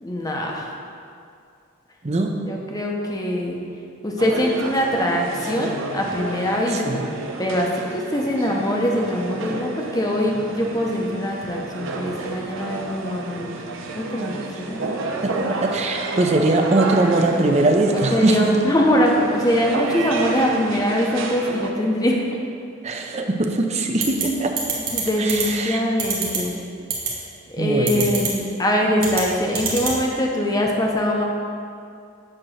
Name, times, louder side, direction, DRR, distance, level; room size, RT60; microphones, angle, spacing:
voice 1, 0.0-0.7 2.5-3.6 4.0-7.0 7.4-13.5 13.9-14.8 17.1-17.2 17.9-22.2 24.9-26.5 27.5-31.2, equal, 20° left, -1 dB, 0.7 m, -23 dB
sound 1, 4.2-21.7, right 3 dB, 70° right, 0.6 m, -31 dB
voice 2, 6.7-7.0 15.2-18.6 22.8-24.5 25.2-25.8 27.6-28.1, right 2 dB, 30° right, 3 dB, 0.5 m, -21 dB
sound 2, 24.0-24.2 24.6-25.0 25.3-25.4 26.0-26.4 26.9-27.1 27.9-28.3 29.0-29.2 29.6-30.0, right 7 dB, 50° right, 1.5 m, -24 dB
8.8 x 2.9 x 6.4 m, 2.4 s
head